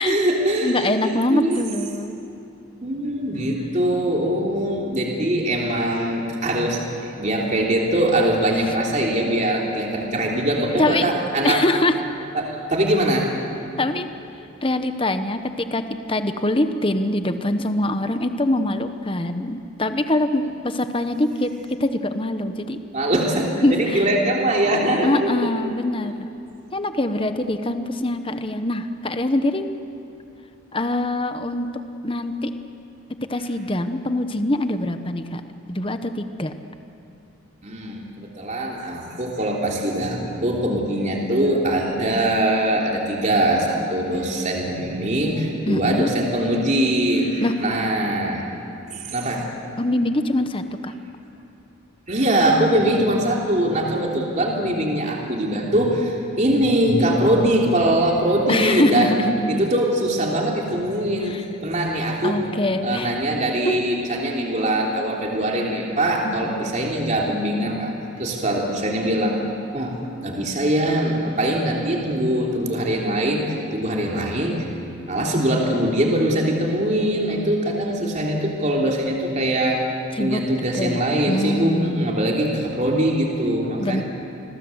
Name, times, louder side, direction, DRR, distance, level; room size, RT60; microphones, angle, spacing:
voice 1, 0.0-1.6 2.8-11.6 12.3-13.3 22.9-25.5 27.3-28.0 37.6-48.5 48.9-49.4 52.1-59.2 59.5-62.4 62.8-69.4 69.7-74.7 75.1-79.9 80.2-84.0, right 1 dB, 35° right, -1 dB, 3.3 m, -22 dB
voice 2, 0.6-2.2 10.7-11.1 11.4-12.0 13.8-14.1 14.6-15.8 16.1-22.8 23.6-24.1 25.0-26.1 26.7-29.7 30.7-31.7 32.0-32.5 33.3-35.4 35.7-36.5 45.7-46.1 47.4-47.5 49.8-50.9 58.5-59.7 61.2-61.4 62.2-63.1 63.6-63.8 66.2-66.7 80.2-80.4 80.8-82.2 83.8-84.0, left 1 dB, 25° left, 9 dB, 1.1 m, -23 dB
28.0 x 21.5 x 8.0 m, 2.8 s
head